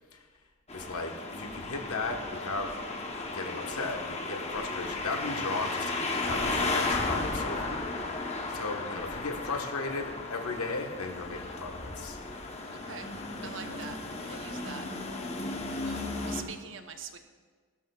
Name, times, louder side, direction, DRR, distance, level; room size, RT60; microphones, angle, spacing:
voice 1, 0.7-2.7 3.3-7.8 8.5-12.2 13.4-14.0 14.3-14.4 15.3-15.4, left 3 dB, 85° left, 3 dB, 1.3 m, -36 dB
sound 1, 0.7-16.4, left 3 dB, 30° left, 0.9 m, -35 dB
voice 2, 13.4-14.9 15.7-17.2, right 6 dB, 60° right, 6 dB, 0.8 m, -44 dB
17.5 x 12.5 x 2.4 m, 1.5 s
head